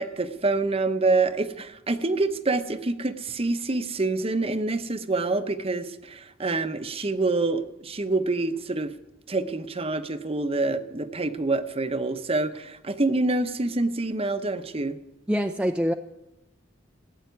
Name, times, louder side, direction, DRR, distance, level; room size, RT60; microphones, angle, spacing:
voice 1, 0.0-8.9 9.3-15.0, right 3 dB, 30° right, 11 dB, 0.8 m, -26 dB
voice 2, 15.3-15.9, equal, 5° right, 5 dB, 0.5 m, -24 dB
15.0 x 8.8 x 9.3 m, 0.95 s
head